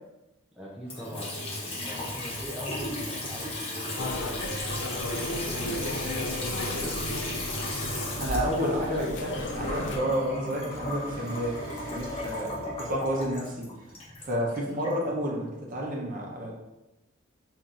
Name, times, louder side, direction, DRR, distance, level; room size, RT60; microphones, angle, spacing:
voice 1, 0.5-4.6 5.2-7.5 13.9-14.0, equal, 5° right, -5 dB, 0.4 m, -43 dB
Water tap faucet / Sink (filling or washing) / Trickle dribble, 0.8-14.9, left 1 dB, 30° left, 0.9 m, -35 dB
sound 1, 4.0-10.0, left 1 dB, 55° left, 0.5 m, -35 dB
voice 2, 8.2-13.7 14.2-16.5, equal, 40° right, -2 dB, 0.8 m, -30 dB
sound 2, 10.7-13.5, equal, 20° right, 1.1 m, -48 dB
5.5 x 2.7 x 2.4 m, 1.0 s
head